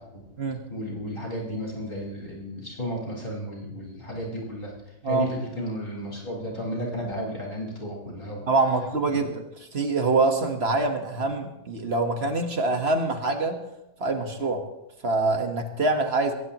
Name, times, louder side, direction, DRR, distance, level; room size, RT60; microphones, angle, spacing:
voice 1, 0.7-4.7 5.1-8.5 9.1-9.3, equal, 50° left, -3 dB, 5.5 m, -33 dB
voice 2, 8.5-9.4 9.7-13.6 14.0-14.6 15.0-16.3, right 3 dB, 60° right, 4 dB, 1.7 m, -25 dB
21.5 x 18.0 x 3.0 m, 0.90 s
omnidirectional pair, 1.2 m